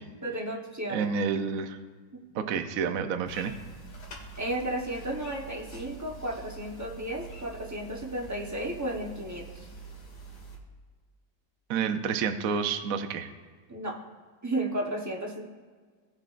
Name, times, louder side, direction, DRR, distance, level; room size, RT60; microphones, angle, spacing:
voice 1, 0.2-1.1 4.4-9.5 13.7-14.0 14.4-15.5, right 1 dB, 20° right, -1 dB, 0.4 m, -33 dB
voice 2, 0.9-1.8 2.3-3.6 11.7-13.3, right 6 dB, 65° right, 7 dB, 0.8 m, -29 dB
sound 1, 3.3-10.6, right 3 dB, 60° left, 2.1 m, -45 dB
18.5 x 6.4 x 2.5 m, 1.6 s
omnidirectional pair, 2.0 m